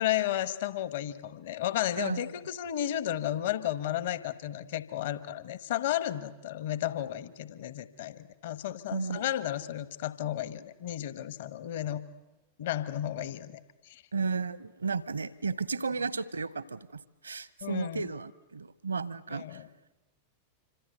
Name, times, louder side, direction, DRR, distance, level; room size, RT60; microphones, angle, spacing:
voice 1, 0.0-12.0 12.6-13.6 13.9-14.0 17.6-18.1 19.3-19.7, left 12 dB, 55° left, 13 dB, 1.2 m, -33 dB
voice 2, 2.0-2.3 8.9-9.3 14.1-19.6, right 4 dB, 75° right, 19 dB, 0.9 m, -34 dB
27.0 x 25.5 x 8.0 m, 1.0 s
figure-of-eight pair, 90°, 0 cm